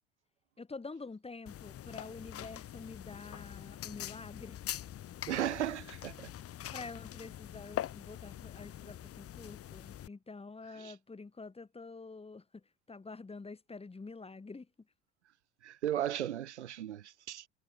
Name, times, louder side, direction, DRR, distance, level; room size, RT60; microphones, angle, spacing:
voice 1, 0.6-4.6 6.7-14.7, left 3 dB, 15° left, 5.8 m, -47 dB
sound 1, 1.5-10.1, left 11 dB, 40° left, 2.9 m, -44 dB
voice 2, 5.3-6.3 10.8-10.9 15.6-17.5, right 11 dB, 80° right, 2.6 m, -36 dB
figure-of-eight pair, 70°, 34 cm